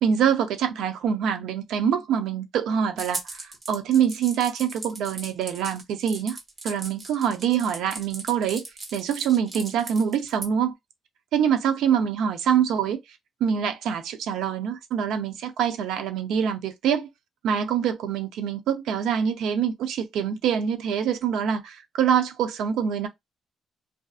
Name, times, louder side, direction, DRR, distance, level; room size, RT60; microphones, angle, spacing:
voice 1, 0.0-6.4 6.6-8.6 8.9-10.7 11.3-13.0 13.4-17.1 17.4-23.1, right 8 dB, 85° right, 0.5 m, -25 dB
sound 1, 3.0-10.5, right 3 dB, 40° right, 1.0 m, -38 dB
2.5 x 2.4 x 2.3 m
cardioid pair, 90°, 0 cm